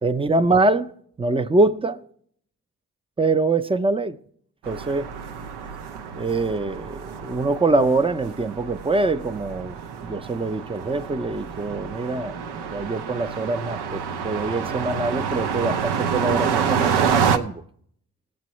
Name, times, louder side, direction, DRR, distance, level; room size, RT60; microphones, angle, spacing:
voice 1, 0.0-0.9 1.2-2.0 3.2-4.2 4.7-5.1 6.1-12.4 12.7-17.6, right 2 dB, 15° right, 0.6 m, -24 dB
sound 1, 4.6-17.4, right 7 dB, 70° right, 0.8 m, -28 dB
18.5 x 7.5 x 3.1 m
hypercardioid pair, 40°, 41 cm